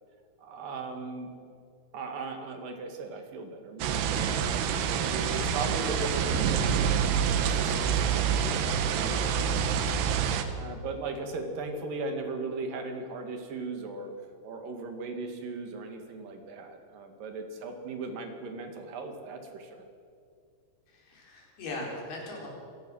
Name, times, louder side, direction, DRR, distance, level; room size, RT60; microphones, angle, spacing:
voice 1, 0.4-1.3 1.9-4.6 4.9-9.8 10.5-14.1 14.4-19.9, right 3 dB, 60° right, 4 dB, 3.6 m, -38 dB
sound 1, 3.8-10.4, right 7 dB, 80° right, 3.3 m, -27 dB
voice 2, 20.9-22.5, left 2 dB, 75° left, -1 dB, 5.9 m, -39 dB
26.5 x 17.5 x 6.4 m, 2.3 s
omnidirectional pair, 4.6 m